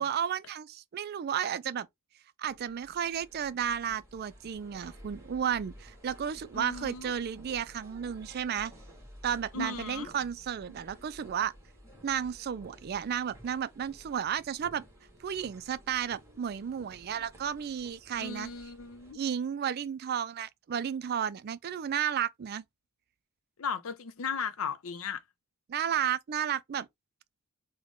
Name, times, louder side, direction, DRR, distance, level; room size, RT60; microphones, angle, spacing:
voice 1, 0.0-1.9 2.4-8.7 9.2-11.5 12.0-14.9 15.2-18.5 19.1-22.6 25.7-26.9, right 8 dB, 45° right, 0.3 m, -33 dB
sound 1, 2.5-19.1, equal, 15° right, 1.5 m, -53 dB
voice 2, 6.5-7.1 9.5-10.1 18.1-19.2 23.6-25.2, left 5 dB, 80° left, 0.6 m, -36 dB
3.7 x 2.2 x 3.6 m
head